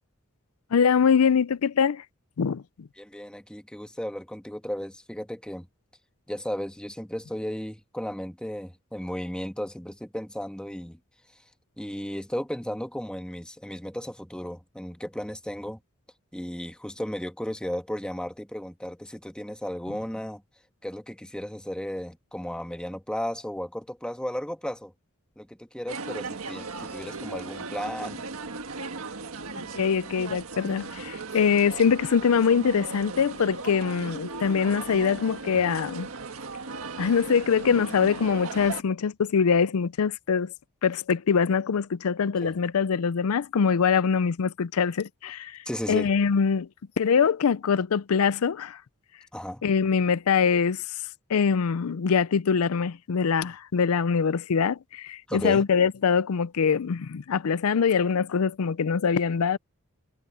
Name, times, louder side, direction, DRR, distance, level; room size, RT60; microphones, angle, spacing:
voice 1, 0.7-2.0 2.4-2.9 29.7-36.1 37.0-40.5 40.8-45.6 45.9-46.7 47.0-48.8 49.6-50.9 51.3-59.6, left 6 dB, 85° left, 0.5 m, -23 dB
voice 2, 3.0-5.7 6.3-11.0 11.8-15.8 16.3-20.4 20.8-24.9 25.4-28.2 42.4-42.5 45.7-46.1 49.3-49.6 55.3-55.6, equal, 5° left, 1.3 m, -34 dB
sound 1, 25.9-38.8, right 4 dB, 80° right, 1.6 m, -37 dB
head